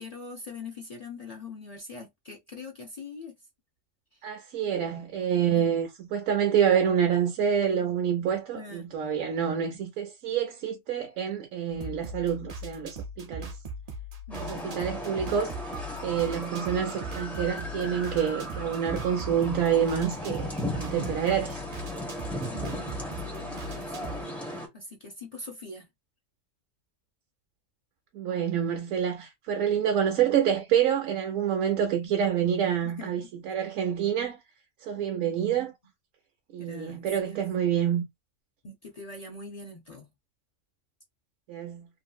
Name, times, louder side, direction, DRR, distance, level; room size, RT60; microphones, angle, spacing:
voice 1, 0.0-3.3 5.5-5.7 8.5-8.9 14.3-14.7 22.5-25.9 32.8-33.3 35.0-35.5 36.6-37.4 38.6-40.1, left 3 dB, 65° left, 0.3 m, -43 dB
voice 2, 4.2-13.5 14.4-15.6 16.0-21.6 28.1-34.4 34.8-35.7 36.5-38.0 41.5-41.9, right 8 dB, 80° right, 1.0 m, -27 dB
sound 1, 11.7-24.2, right 1 dB, 60° right, 0.4 m, -40 dB
sound 2, 14.3-24.7, equal, ahead, 0.8 m, -36 dB
2.7 x 2.6 x 2.3 m
omnidirectional pair, 1.4 m